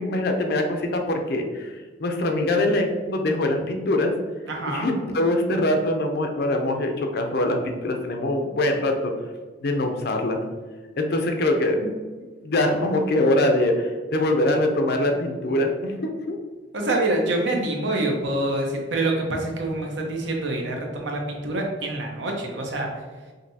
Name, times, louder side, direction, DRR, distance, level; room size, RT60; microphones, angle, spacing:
voice 1, 0.0-1.7 2.0-4.1 4.6-9.1 9.6-10.4 11.0-11.8 12.4-16.4, left 1 dB, 55° left, 4 dB, 0.5 m, -23 dB
voice 2, 4.5-4.9 16.7-22.9, right 2 dB, 70° right, 1 dB, 0.8 m, -26 dB
5.1 x 2.7 x 2.7 m, 1.4 s
head